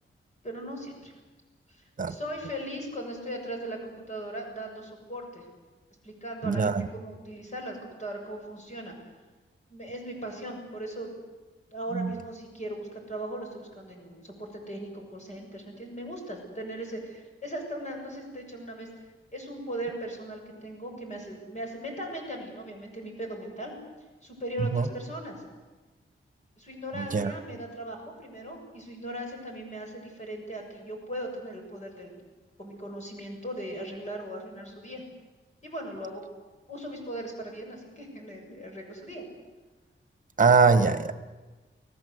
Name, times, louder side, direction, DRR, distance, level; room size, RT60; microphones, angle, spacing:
voice 1, 0.4-1.1 1.7-1.8 2.1-5.5 6.0-8.9 9.7-11.1 11.7-18.9 19.3-23.7 24.2-25.4 26.6-32.1 32.6-35.0 35.6-36.2 36.7-39.2, right 1 dB, 35° left, 2 dB, 7.3 m, -38 dB
voice 2, 6.4-6.9 11.9-12.1 24.6-24.9 27.0-27.3 40.4-41.1, right 4 dB, 40° right, 10 dB, 1.6 m, -22 dB
29.5 x 19.0 x 8.2 m, 1.3 s
wide cardioid pair, 180°, 21 cm